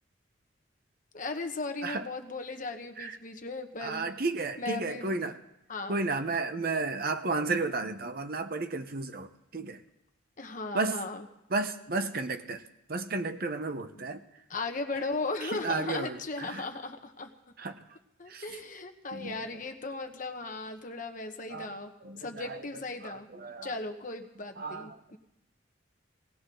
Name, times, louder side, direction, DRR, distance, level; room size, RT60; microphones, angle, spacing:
voice 1, 1.1-4.1 4.6-5.1 5.7-6.0 10.4-11.2 13.9-14.1 14.5-17.3 18.2-21.9 22.2-23.3 23.6-25.2, left 3 dB, 45° left, 6 dB, 1.2 m, -37 dB
voice 2, 3.8-5.4 5.9-9.8 10.7-11.0 11.5-12.6 12.9-14.2 15.4-16.6 17.6-17.8 18.3-18.4 19.1-19.4 21.5-22.7 23.0-23.8 24.6-25.0, right 3 dB, 50° right, 8 dB, 0.9 m, -33 dB
18.5 x 18.0 x 3.8 m, 0.86 s
head